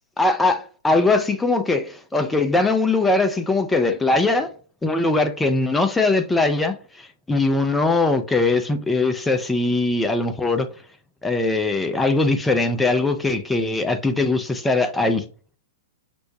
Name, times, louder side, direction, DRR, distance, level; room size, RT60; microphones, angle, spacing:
voice 1, 0.2-4.5 4.8-10.7 11.2-15.2, left 3 dB, 10° left, 0.5 m, -21 dB
6.0 x 2.2 x 2.7 m
figure-of-eight pair, 105°, 0 cm